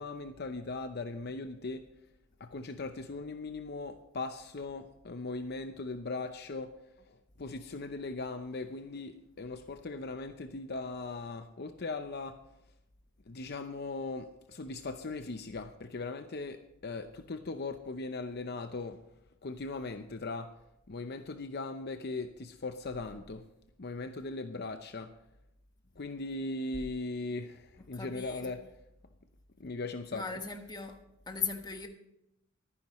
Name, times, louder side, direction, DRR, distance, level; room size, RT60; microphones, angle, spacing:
voice 1, 0.0-1.8 2.4-6.7 7.1-12.4 13.3-19.0 19.4-20.5 20.9-23.4 23.8-25.1 26.0-28.6 29.6-30.3, left 3 dB, 50° left, 7 dB, 0.7 m, -39 dB
voice 2, 27.9-28.6 30.1-31.0 31.3-31.9, left 5 dB, 20° left, 5 dB, 1.3 m, -38 dB
23.5 x 9.9 x 3.1 m, 0.84 s
head